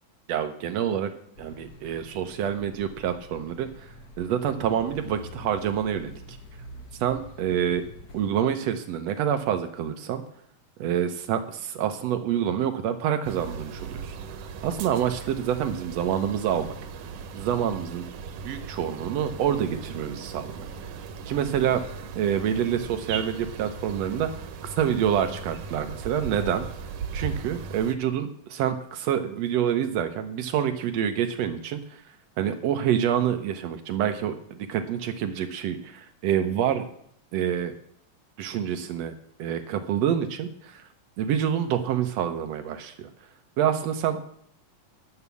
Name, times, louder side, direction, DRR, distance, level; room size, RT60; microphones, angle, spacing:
voice 1, 0.3-1.1 1.4-3.9 4.2-6.4 7.0-7.8 8.1-10.2 10.8-14.2 14.6-16.7 17.3-18.0 18.4-21.0 21.3-21.8 22.1-26.6 27.1-32.0 32.4-36.9 37.3-37.7 38.4-39.1 39.4-40.8 41.2-43.1 43.6-44.3, right 9 dB, 85° right, 7 dB, 1.5 m, -27 dB
sound 1, 1.3-8.3, left 2 dB, 80° left, 0.8 m, -46 dB
sound 2, 13.2-28.0, right 6 dB, 70° right, 2.1 m, -38 dB
11.0 x 6.8 x 8.3 m, 0.67 s
omnidirectional pair, 4.1 m